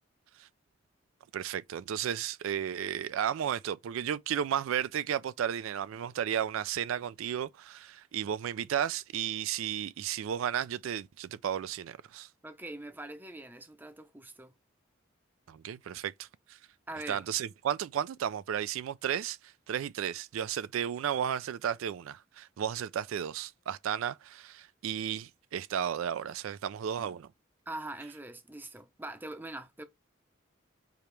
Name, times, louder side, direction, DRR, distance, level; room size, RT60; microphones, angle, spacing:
voice 1, 1.3-12.3 15.5-16.6 17.1-27.3, right 9 dB, 80° right, 0.3 m, -33 dB
voice 2, 12.4-14.5 16.9-17.3 27.7-29.8, right 2 dB, 10° right, 0.5 m, -43 dB
4.9 x 2.9 x 3.2 m
head